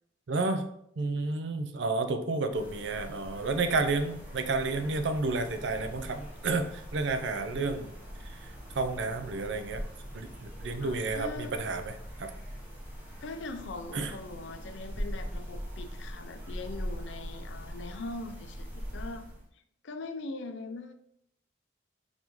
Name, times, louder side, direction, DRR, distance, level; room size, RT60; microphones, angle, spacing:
voice 1, 0.3-0.7 1.0-7.9 8.3-9.9 10.1-11.9 12.2-12.3 13.9-14.1, right 3 dB, 70° right, 8 dB, 0.5 m, -31 dB
sound 1, 2.5-19.5, equal, 10° right, 0.9 m, -42 dB
voice 2, 10.8-11.5 13.2-19.2 19.8-20.9, left 2 dB, 80° left, 8 dB, 0.5 m, -41 dB
4.0 x 3.1 x 3.5 m, 0.71 s
head